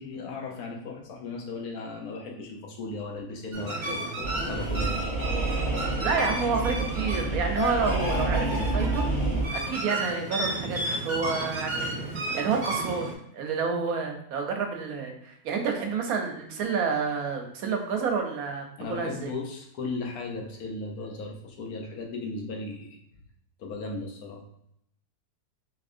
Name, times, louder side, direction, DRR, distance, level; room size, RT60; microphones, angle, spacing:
voice 1, 0.0-5.1 18.8-23.0 23.6-24.4, left 3 dB, 75° left, 1 dB, 1.2 m, -36 dB
sound 1, 3.5-13.1, right 1 dB, 40° right, 0.8 m, -33 dB
sound 2, 4.2-9.4, right 2 dB, 35° left, 1.7 m, -29 dB
voice 2, 6.0-9.0 9.5-19.4, right 5 dB, 75° right, 3 dB, 1.1 m, -29 dB
4.1 x 3.1 x 2.5 m, 0.73 s
omnidirectional pair, 1.6 m